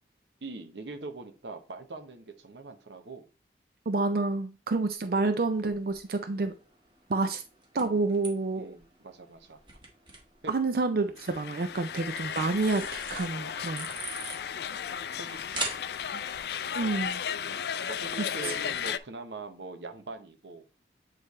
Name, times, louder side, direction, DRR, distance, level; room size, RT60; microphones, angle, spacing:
voice 1, 0.4-3.2 7.1-7.3 8.5-9.6 10.4-10.5 11.7-11.8 12.2-12.3 15.2-15.7 16.5-16.7 17.8-20.6, right 3 dB, 80° right, 0.9 m, -43 dB
voice 2, 3.9-6.5 7.1-7.4 7.7-8.7 10.5-13.9 16.1-16.2 16.7-17.2 18.4-18.5, right 3 dB, 55° right, 0.4 m, -29 dB
sound 1, 4.7-18.8, right 2 dB, 25° right, 1.5 m, -45 dB
sound 2, 11.2-19.0, left 8 dB, 60° left, 0.3 m, -35 dB
8.5 x 3.3 x 4.1 m
head